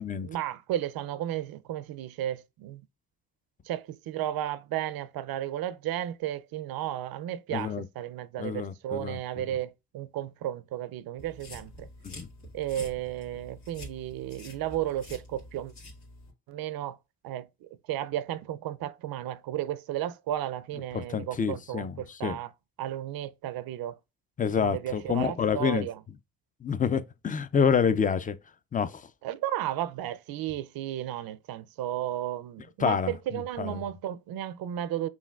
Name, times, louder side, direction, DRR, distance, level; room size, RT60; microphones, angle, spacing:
voice 1, 0.0-2.8 3.6-11.9 12.5-15.7 16.5-17.0 17.2-22.5 22.8-24.0 24.6-26.0 29.2-35.1, right 12 dB, 70° right, 0.5 m, -34 dB
voice 2, 7.5-7.9 8.4-9.2 12.0-12.3 20.9-22.4 24.4-25.9 26.6-28.4 28.7-29.1 32.8-33.8, left 6 dB, 25° left, 0.3 m, -28 dB
sound 1, 11.2-16.3, left 1 dB, 85° left, 1.8 m, -47 dB
5.6 x 2.4 x 2.3 m
cardioid pair, 70°, 37 cm